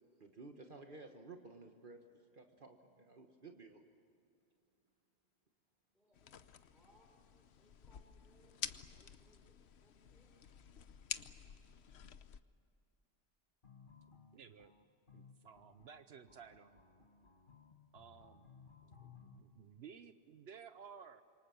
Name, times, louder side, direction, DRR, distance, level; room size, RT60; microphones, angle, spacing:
voice 1, 0.2-2.1 2.3-3.8, right 3 dB, 55° right, 4 dB, 1.5 m, -54 dB
voice 2, 5.9-10.4, equal, ahead, 1 dB, 5.4 m, -72 dB
sound 1, 6.1-12.4, left 8 dB, 85° left, 1.1 m, -49 dB
sound 2, 13.6-19.4, left 6 dB, 55° left, 1.8 m, -61 dB
voice 3, 14.3-14.7 15.1-16.8 17.9-18.5 18.8-21.2, right 7 dB, 75° right, 10 dB, 1.1 m, -56 dB
27.5 x 24.0 x 7.0 m, 2.7 s
omnidirectional pair, 1.1 m